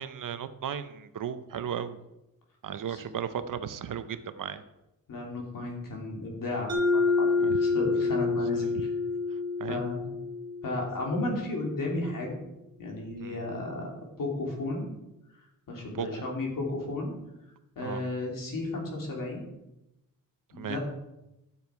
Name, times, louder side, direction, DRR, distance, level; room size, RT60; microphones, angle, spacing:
voice 1, 0.0-2.0 2.6-4.6 7.4-7.6 8.6-8.8 9.6-9.8 13.2-13.4 15.9-16.1 17.8-18.0 20.6-20.8, right 8 dB, 65° right, 12 dB, 0.7 m, -35 dB
voice 2, 5.1-8.9 9.7-10.1 10.6-12.4 12.8-13.9 14.2-14.9 15.7-17.1 17.7-19.4 20.5-20.8, left 2 dB, 70° left, 0 dB, 3.0 m, -33 dB
Mallet percussion, 6.7-11.3, left 4 dB, 50° right, 1.4 m, -28 dB
12.0 x 7.1 x 4.7 m, 0.92 s
wide cardioid pair, 160°, 34 cm